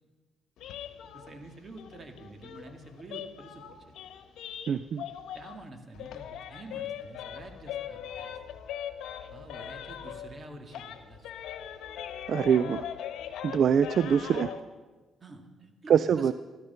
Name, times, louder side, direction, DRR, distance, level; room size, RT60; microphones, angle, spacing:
sound 1, 0.6-5.7 5.9-10.4 10.7-14.6, left 9 dB, 80° left, 1.1 m, -40 dB
voice 1, 1.1-3.9 5.3-8.4 9.3-11.3 13.9-14.4 15.2-16.3, right 2 dB, 35° right, 5 dB, 2.1 m, -47 dB
voice 2, 4.7-5.0 12.3-12.8 13.4-14.5 15.9-16.3, right 7 dB, 60° right, 15 dB, 0.3 m, -24 dB
14.5 x 13.5 x 5.7 m, 1.3 s
cardioid pair, 90°, 0 cm